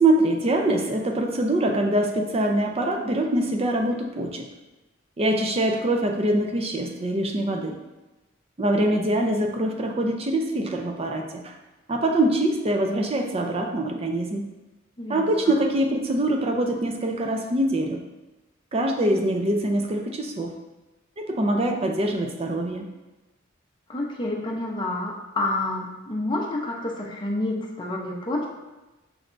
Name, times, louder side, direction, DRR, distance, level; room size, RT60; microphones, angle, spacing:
voice 1, 0.0-4.5 5.2-7.7 8.6-11.5 11.9-14.5 15.1-18.0 18.7-20.5 21.2-22.9, right 1 dB, 30° right, 3 dB, 0.5 m, -24 dB
voice 2, 15.0-15.5 23.9-28.5, left 2 dB, 25° left, -1 dB, 0.6 m, -29 dB
6.2 x 3.2 x 2.5 m, 1.1 s
head